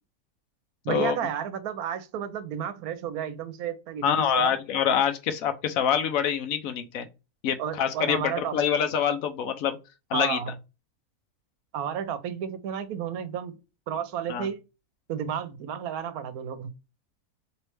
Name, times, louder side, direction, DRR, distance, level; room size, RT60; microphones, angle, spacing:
voice 1, 0.8-4.5 7.6-8.6 10.1-10.5 11.7-13.6 13.9-14.6 15.1-16.7, right 8 dB, 75° right, 1.1 m, -32 dB
voice 2, 4.0-7.1 7.4-9.8 10.1-10.4 14.3-14.5, left 8 dB, 70° left, 1.0 m, -25 dB
3.1 x 3.1 x 3.1 m
omnidirectional pair, 1.6 m